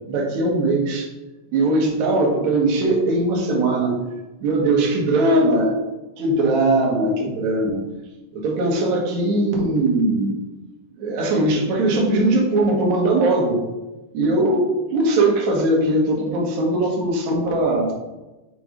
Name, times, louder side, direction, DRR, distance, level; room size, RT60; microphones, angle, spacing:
voice 1, 0.1-1.1 1.5-4.0 4.4-5.8 6.2-7.8 8.3-10.3 11.0-13.6 14.1-17.9, right 2 dB, 70° right, -1 dB, 2.4 m, -20 dB
6.9 x 4.1 x 3.7 m, 1.1 s
omnidirectional pair, 3.6 m